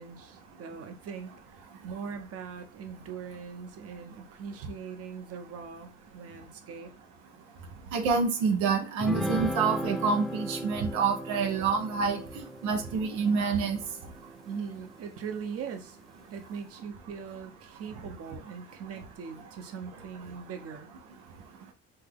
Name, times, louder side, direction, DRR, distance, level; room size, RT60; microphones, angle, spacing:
voice 1, 0.0-6.9 14.5-16.0 16.3-20.9, right 6 dB, 55° right, 6 dB, 0.9 m, -41 dB
voice 2, 7.9-13.8, right 5 dB, 90° right, 4 dB, 0.8 m, -27 dB
sound 1, 9.0-14.7, equal, ahead, 0.8 m, -37 dB
5.6 x 2.2 x 3.5 m, 0.36 s
cardioid pair, 105°, 29 cm